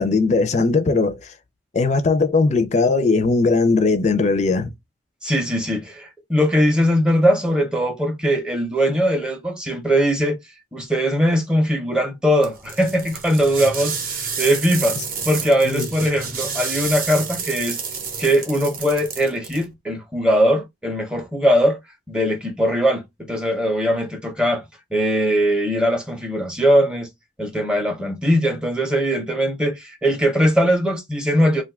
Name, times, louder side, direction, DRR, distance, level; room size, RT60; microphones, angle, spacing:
voice 1, 0.0-1.3 1.7-4.7 15.6-15.9, left 3 dB, 35° left, 0.4 m, -19 dB
voice 2, 5.2-10.4 10.7-15.0 15.2-17.8 18.2-21.8 22.1-24.6 24.9-27.1 27.4-31.6, equal, 5° right, 0.6 m, -20 dB
sound 1, 12.4-19.6, right 5 dB, 50° right, 0.7 m, -30 dB
2.6 x 2.3 x 3.5 m
head